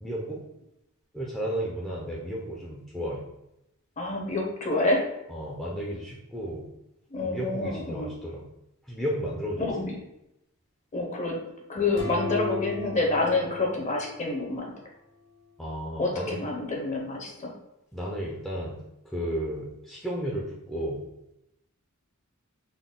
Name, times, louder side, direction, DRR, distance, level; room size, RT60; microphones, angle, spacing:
voice 1, 0.0-0.4 1.1-3.2 5.3-6.7 7.2-8.5 8.9-9.7 15.6-16.4 17.9-21.0, equal, ahead, -5 dB, 0.5 m, -33 dB
voice 2, 4.0-5.0 7.1-8.1 9.6-10.0 10.9-11.4 11.7-14.7 16.0-17.5, left 2 dB, 35° left, 0 dB, 0.7 m, -28 dB
sound 1, 12.0-14.7, left 4 dB, 65° left, 1.0 m, -36 dB
3.9 x 2.2 x 3.6 m, 0.84 s
head